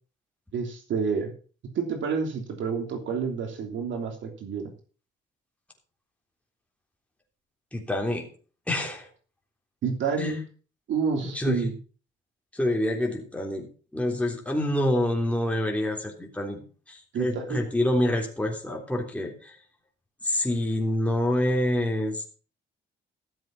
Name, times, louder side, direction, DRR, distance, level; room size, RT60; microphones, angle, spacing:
voice 1, 0.5-1.3 1.7-4.7 9.8-10.4 10.9-11.7 17.1-17.6, right 5 dB, 75° right, 4 dB, 3.1 m, -29 dB
voice 2, 7.7-8.3 8.7-9.1 10.2-10.4 11.3-11.6 12.5-13.7 13.9-19.6 20.2-22.3, left 1 dB, 5° left, 1 dB, 3.5 m, -27 dB
14.0 x 7.6 x 6.0 m, 0.38 s
cardioid pair, 90°, 20 cm